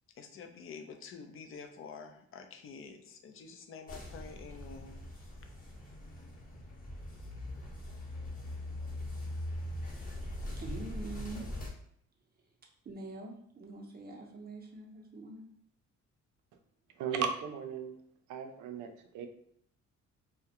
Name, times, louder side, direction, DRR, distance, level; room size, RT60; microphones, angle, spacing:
voice 1, 0.2-5.0, left 5 dB, 45° left, 6 dB, 0.4 m, -48 dB
sound 1, 3.9-11.7, left 1 dB, 30° left, 0.9 m, -41 dB
voice 2, 10.5-11.5 12.4-12.5 12.8-15.4, right 3 dB, 30° right, 0 dB, 0.6 m, -45 dB
voice 3, 17.0-18.0 18.3-18.9 19.1-19.3, right 7 dB, 80° right, 6 dB, 0.4 m, -35 dB
2.3 x 2.1 x 2.8 m, 0.68 s
cardioid pair, 90°, 30 cm